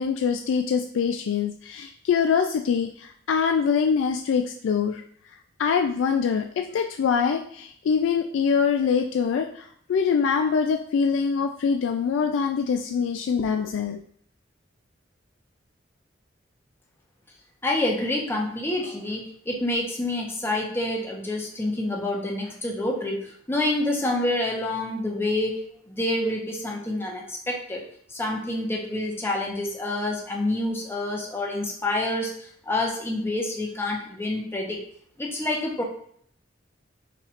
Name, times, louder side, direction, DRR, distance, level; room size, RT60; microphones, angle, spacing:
voice 1, 0.0-5.0 5.6-14.0, left 6 dB, 85° left, 5 dB, 0.3 m, -24 dB
voice 2, 17.6-25.6 25.9-27.8 28.1-32.3 32.7-34.8 35.2-35.8, left 1 dB, 15° left, 0 dB, 0.7 m, -27 dB
4.2 x 2.5 x 4.2 m, 0.62 s
head